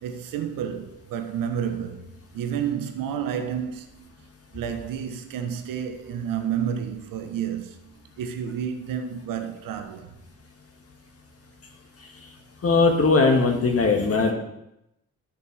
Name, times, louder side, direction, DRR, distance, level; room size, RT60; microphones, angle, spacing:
voice 1, 0.0-4.1 4.5-7.9 8.2-10.2, right 8 dB, 50° right, 0.9 m, -30 dB
voice 2, 12.6-14.3, left 4 dB, 35° left, 1.7 m, -19 dB
12.5 x 6.9 x 3.3 m
figure-of-eight pair, 45°, 41 cm